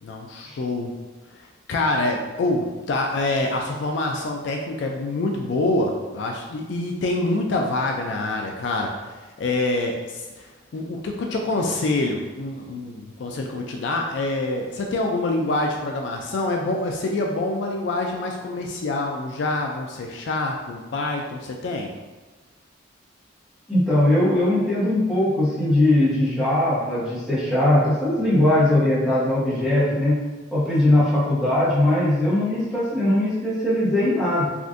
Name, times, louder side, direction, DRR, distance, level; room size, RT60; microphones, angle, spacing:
voice 1, 0.0-0.9 1.3-21.9 28.2-28.3 30.9-31.0, left 2 dB, 60° left, 1 dB, 0.3 m, -26 dB
voice 2, 23.7-30.2 30.5-34.5, left 1 dB, ahead, -11 dB, 1.0 m, -20 dB
3.5 x 2.4 x 2.5 m, 1.2 s
head